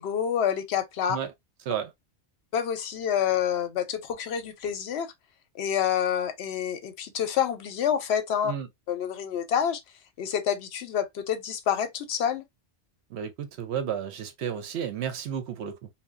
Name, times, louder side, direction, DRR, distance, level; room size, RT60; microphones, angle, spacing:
voice 1, 0.0-1.2 2.5-5.1 5.5-8.5 8.9-9.8 10.2-12.4, left 8 dB, 75° left, 0.8 m, -28 dB
voice 2, 13.1-15.9, right 8 dB, 75° right, 0.8 m, -32 dB
2.7 x 2.1 x 2.4 m
omnidirectional pair, 1.2 m